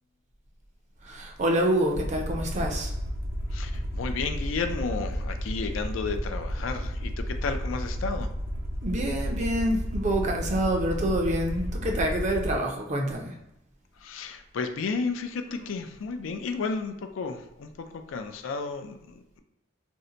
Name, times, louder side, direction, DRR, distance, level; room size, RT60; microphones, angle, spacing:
voice 1, 1.0-2.9 8.8-13.3, right 1 dB, 35° right, 2 dB, 0.5 m, -27 dB
Aircraft, 1.9-12.6, equal, 85° right, 0.8 m, -32 dB
voice 2, 3.5-8.3 14.0-19.4, left 4 dB, 85° left, 7 dB, 0.4 m, -33 dB
2.6 x 2.1 x 3.8 m, 0.87 s
head